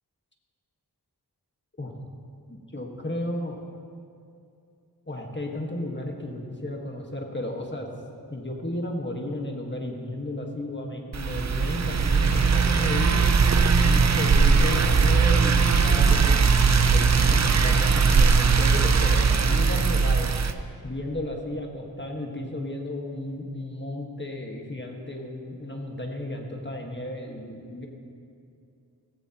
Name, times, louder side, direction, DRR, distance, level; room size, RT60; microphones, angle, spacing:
voice 1, 2.5-3.6 5.1-7.9 8.3-13.2 13.8-16.4 16.9-20.3 20.8-27.9, left 1 dB, 25° left, 1 dB, 1.5 m, -33 dB
sound 1, 11.1-20.5, right 5 dB, 45° right, 0.6 m, -20 dB
16.5 x 15.5 x 2.9 m, 2.5 s
wide cardioid pair, 80°, 40 cm